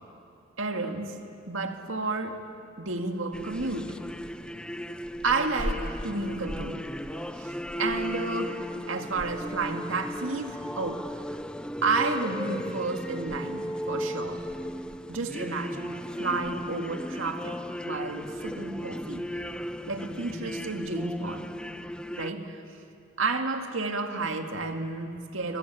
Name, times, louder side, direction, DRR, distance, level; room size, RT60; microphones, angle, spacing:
voice 1, 0.6-1.2 1.5-2.4 2.8-4.0 5.2-6.9 7.1-11.1 11.8-14.4 15.1-19.3 19.9-21.5 22.2-22.6 23.2-25.6, right 3 dB, 80° right, 4 dB, 2.0 m, -31 dB
sound 1, 3.3-22.3, equal, 5° left, 0.5 m, -35 dB
23.0 x 19.5 x 8.7 m, 2.5 s
head